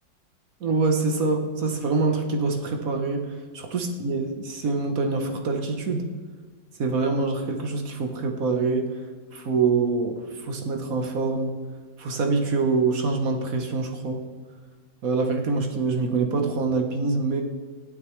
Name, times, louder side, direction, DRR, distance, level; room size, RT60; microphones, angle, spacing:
voice 1, 0.6-6.1 6.8-8.9 9.3-11.6 12.0-14.2 15.0-17.4, right 4 dB, 50° right, 4 dB, 1.3 m, -25 dB
17.5 x 11.0 x 3.2 m, 1.4 s
omnidirectional pair, 2.1 m